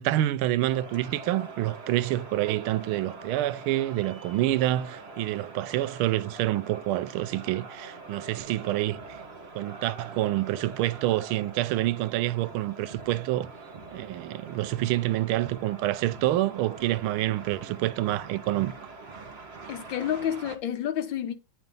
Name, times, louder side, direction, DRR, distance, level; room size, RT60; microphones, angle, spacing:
voice 1, 0.0-9.2 9.5-13.5 13.9-18.7, right 15 dB, 85° right, 1.5 m, -27 dB
sound 1, 0.7-20.6, right 3 dB, 35° right, 1.4 m, -44 dB
voice 2, 19.7-21.3, left 10 dB, 70° left, 1.6 m, -29 dB
9.3 x 3.5 x 5.3 m
omnidirectional pair, 2.3 m